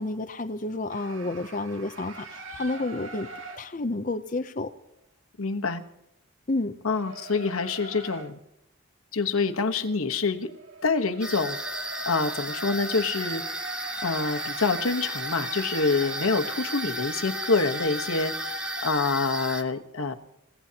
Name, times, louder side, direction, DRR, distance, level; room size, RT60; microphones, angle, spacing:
voice 1, 0.0-3.3 3.6-4.7 6.5-6.8, left 2 dB, 40° left, 7 dB, 0.6 m, -30 dB
sound 1, 0.9-3.7 6.9-8.3 10.0-18.9, right 1 dB, 65° right, 1.6 m, -40 dB
voice 2, 5.4-5.8 6.8-8.4 9.1-10.5 10.8-11.6 12.1-13.4 14.0-18.5 18.8-20.1, left 4 dB, 80° left, 6 dB, 1.2 m, -26 dB
sound 2, 11.2-19.6, right 1 dB, 5° right, 0.9 m, -34 dB
28.5 x 16.5 x 2.9 m, 0.85 s
head